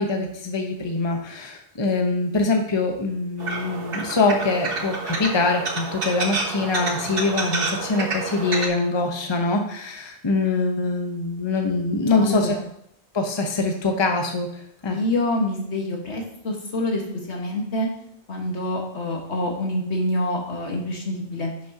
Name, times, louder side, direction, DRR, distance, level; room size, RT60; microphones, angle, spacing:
voice 1, 0.0-12.6 13.1-14.5 14.8-15.0, left 3 dB, 25° left, 3 dB, 0.9 m, -24 dB
sound 1, 3.4-8.7, right 3 dB, 55° right, 1.4 m, -29 dB
voice 2, 12.0-12.7 14.9-17.0 17.3-17.9 18.3-21.5, left 1 dB, 75° left, 0 dB, 1.9 m, -26 dB
10.5 x 6.3 x 2.9 m, 0.71 s
omnidirectional pair, 1.1 m